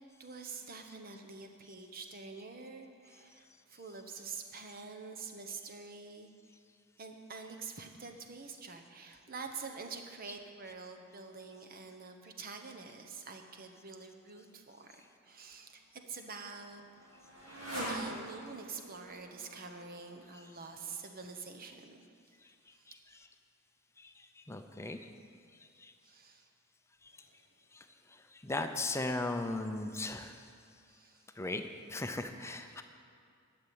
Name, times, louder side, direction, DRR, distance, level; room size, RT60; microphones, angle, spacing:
voice 1, 0.2-6.3 7.0-16.8 17.8-22.1 22.8-22.9 24.9-25.1 26.0-26.5 27.2-27.4 30.9-31.3, right 4 dB, 45° right, 5 dB, 1.0 m, -47 dB
Motorcycle, 15.6-21.0, right 1 dB, 65° right, 3.3 m, -45 dB
voice 2, 24.5-25.0 25.8-25.9 28.4-30.4 31.4-31.6 31.9-32.8, left 2 dB, 15° left, 7 dB, 0.6 m, -36 dB
11.5 x 7.0 x 8.7 m, 2.3 s
head